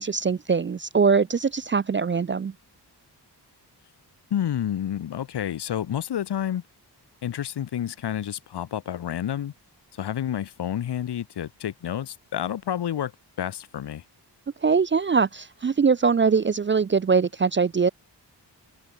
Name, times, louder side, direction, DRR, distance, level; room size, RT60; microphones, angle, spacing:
voice 1, 0.0-2.5 14.6-17.9, right 5 dB, 30° right, 0.3 m, -22 dB
voice 2, 4.3-6.6 7.2-9.5 9.9-13.1 13.4-14.0, left 10 dB, 70° left, 0.9 m, -29 dB
open air
wide cardioid pair, 165°, 41 cm